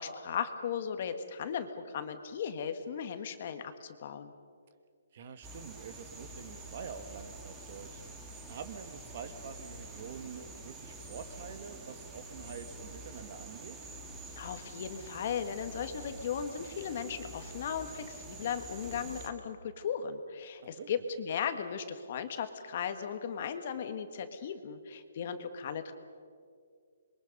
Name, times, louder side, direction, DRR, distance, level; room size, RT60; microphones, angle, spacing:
voice 1, 0.0-4.3 14.4-25.9, left 7 dB, 40° left, 8 dB, 1.6 m, -37 dB
voice 2, 5.1-8.0 8.5-13.8 20.6-20.9, right 6 dB, 40° right, 9 dB, 1.5 m, -46 dB
sound 1, 5.4-19.3, right 2 dB, 10° right, 2.0 m, -47 dB
28.0 x 22.5 x 5.4 m, 2.2 s
hypercardioid pair, 165°, 0 cm